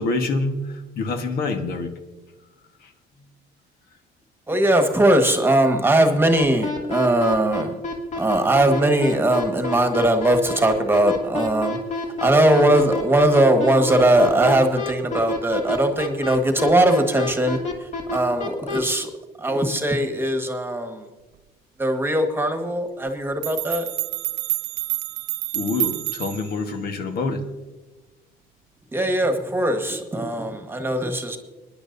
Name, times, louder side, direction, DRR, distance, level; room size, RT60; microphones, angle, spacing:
voice 1, 0.0-2.0 25.5-27.5, left 3 dB, 65° left, 6 dB, 1.4 m, -26 dB
voice 2, 4.5-7.8 8.2-11.8 12.2-17.6 18.1-19.1 19.4-21.0 21.8-23.9 28.9-31.4, right 1 dB, 15° right, 6 dB, 1.5 m, -20 dB
sound 1, 6.4-18.8, left 2 dB, 45° left, 2.6 m, -28 dB
sound 2, 23.4-26.6, right 21 dB, 75° right, 0.5 m, -28 dB
25.5 x 10.5 x 2.7 m, 1.2 s
cardioid pair, 110°, 17 cm